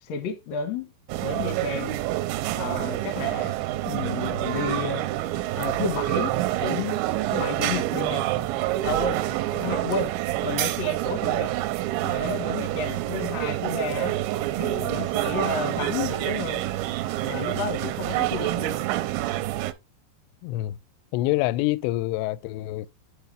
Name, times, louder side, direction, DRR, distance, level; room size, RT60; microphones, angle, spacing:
voice 1, 0.0-0.9 1.2-2.0 2.6-3.6 3.8-5.0 5.5-7.0 7.3-8.3 8.8-11.5 12.0-14.2 14.6-16.6 17.2-18.8, left 4 dB, 60° left, 1.9 m, -31 dB
sound 1, 1.1-19.7, right 15 dB, 90° right, 2.9 m, -27 dB
voice 2, 20.4-20.8 21.1-22.9, left 17 dB, 85° left, 2.6 m, -26 dB
10.5 x 4.3 x 3.3 m
omnidirectional pair, 5.2 m